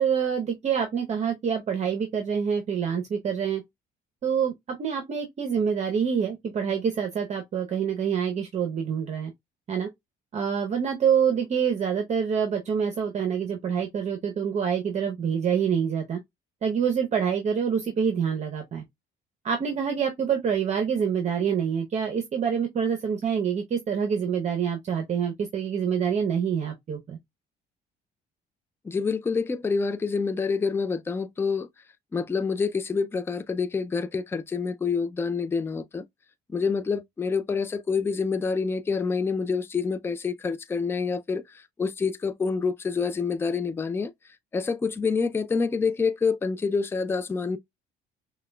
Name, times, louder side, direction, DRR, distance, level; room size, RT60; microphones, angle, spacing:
voice 1, 0.0-3.6 4.2-4.5 4.8-9.3 9.7-9.9 10.3-16.2 16.6-18.8 19.4-27.2, right 7 dB, 40° right, 0.8 m, -26 dB
voice 2, 28.8-31.7 32.1-36.0 36.5-41.4 41.8-44.1 44.5-47.6, left 5 dB, 15° left, 0.4 m, -27 dB
5.6 x 2.2 x 2.2 m
cardioid pair, 110°, 17 cm